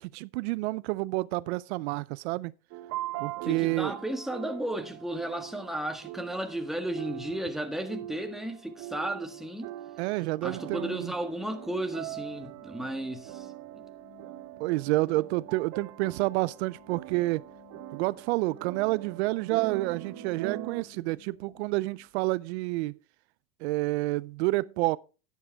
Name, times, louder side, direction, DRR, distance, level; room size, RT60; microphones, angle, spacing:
voice 1, 0.0-2.5 3.2-4.0 10.0-11.1 14.6-17.4 17.9-23.0 23.6-25.0, right 20 dB, 75° right, 0.5 m, -29 dB
sound 1, 2.7-20.8, right 14 dB, 50° right, 1.0 m, -42 dB
voice 2, 3.4-9.7 10.4-13.5, right 1 dB, ahead, 1.7 m, -34 dB
sound 2, 10.6-22.1, left 12 dB, 60° left, 7.5 m, -59 dB
10.5 x 10.0 x 3.4 m
supercardioid pair, 115°, 33 cm